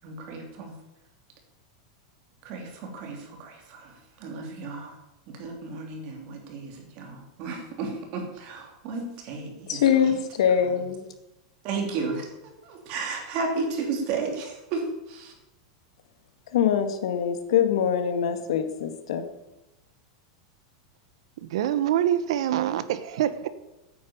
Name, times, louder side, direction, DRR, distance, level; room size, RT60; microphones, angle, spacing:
voice 1, 0.0-0.8 2.4-5.0 5.3-10.2 10.6-10.9 11.6-15.4, right 4 dB, 40° right, 2.9 m, -34 dB
voice 2, 9.7-11.1 16.5-19.3, left 8 dB, 80° left, 2.0 m, -23 dB
voice 3, 21.4-23.5, right 11 dB, 65° right, 1.2 m, -25 dB
10.5 x 9.3 x 8.7 m
supercardioid pair, 170°, 3 cm